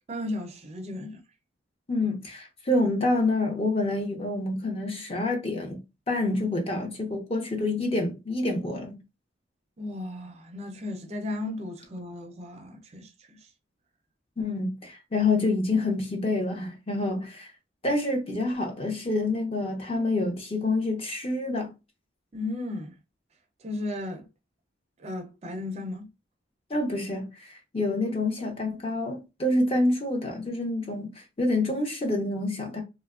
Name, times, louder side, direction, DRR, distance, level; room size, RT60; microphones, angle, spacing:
voice 1, 0.1-1.2 9.8-13.5 22.3-22.9 23.6-24.3 25.0-26.1, left 2 dB, 35° right, 0.4 m, -35 dB
voice 2, 1.9-5.8 6.1-9.0 14.4-17.5 17.8-21.7 26.7-32.8, left 2 dB, 30° left, 0.6 m, -27 dB
2.9 x 2.2 x 2.3 m
head